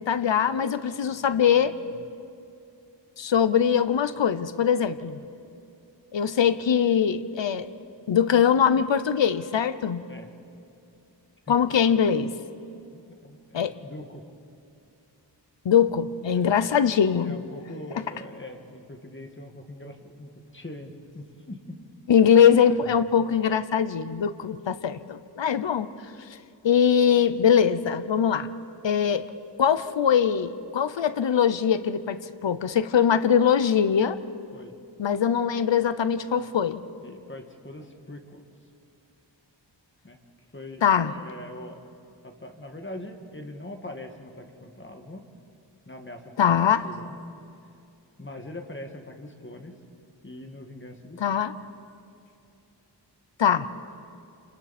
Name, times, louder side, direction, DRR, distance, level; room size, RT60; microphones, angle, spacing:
voice 1, 0.0-1.9 3.2-5.2 6.1-7.7 8.1-10.0 11.5-12.3 13.5-13.7 15.6-17.4 17.9-18.0 22.1-25.9 26.6-28.5 28.8-29.3 29.6-34.2 35.0-36.8 40.8-41.1 46.4-46.8 51.2-51.5 53.4-53.7, left 8 dB, 80° left, 13 dB, 0.8 m, -22 dB
voice 2, 12.9-14.2 16.3-16.5 17.2-21.9 22.9-23.1 34.5-34.7 37.0-38.5 40.0-40.2 40.5-41.8 42.2-45.2 45.9-47.2 48.2-49.8 50.2-51.2, left 1 dB, 25° left, 4 dB, 1.8 m, -42 dB
29.0 x 27.0 x 4.2 m, 2.6 s
wide cardioid pair, 80°, 44 cm